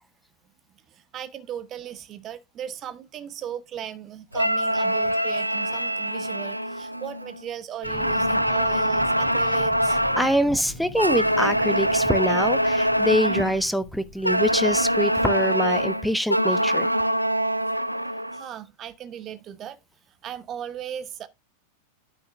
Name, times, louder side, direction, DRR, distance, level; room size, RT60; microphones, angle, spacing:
voice 1, 0.9-10.0 18.3-19.8 20.2-21.3, right 10 dB, 30° right, 1.0 m, -37 dB
sound 1, 4.3-7.4 7.8-10.4 11.0-13.6 14.2-18.5, equal, 90° right, 0.5 m, -24 dB
sound 2, 7.8-16.0 17.4-17.5, left 4 dB, 60° left, 2.5 m, -43 dB
voice 2, 10.2-16.9, equal, ahead, 0.7 m, -24 dB
9.6 x 6.4 x 3.3 m
figure-of-eight pair, 90°, 0 cm